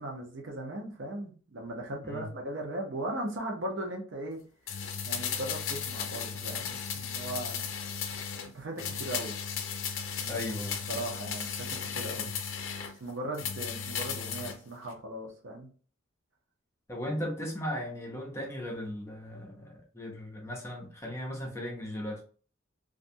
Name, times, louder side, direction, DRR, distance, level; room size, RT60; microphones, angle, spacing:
voice 1, 0.0-4.4 5.0-8.2 8.5-9.3 10.9-12.3 12.9-15.7, right 1 dB, 65° right, 0.8 m, -38 dB
sound 1, 4.7-8.5 8.8-12.9 13.3-14.6 14.9-15.0, left 7 dB, 70° left, 0.4 m, -35 dB
voice 2, 10.3-10.8 12.1-12.3 16.9-22.2, left 1 dB, 15° left, 0.6 m, -37 dB
2.5 x 2.2 x 2.6 m
head